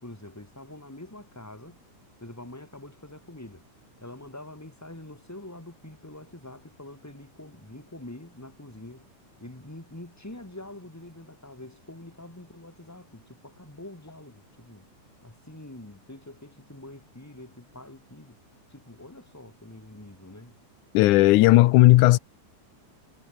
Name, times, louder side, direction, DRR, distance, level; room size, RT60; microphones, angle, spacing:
voice 1, 0.0-1.8 2.2-3.7 4.0-9.1 9.4-14.9 15.2-18.4 18.7-20.6, left 1 dB, 5° left, 2.3 m, -45 dB
voice 2, 20.9-22.2, left 18 dB, 90° left, 2.2 m, -15 dB
omnidirectional pair, 3.4 m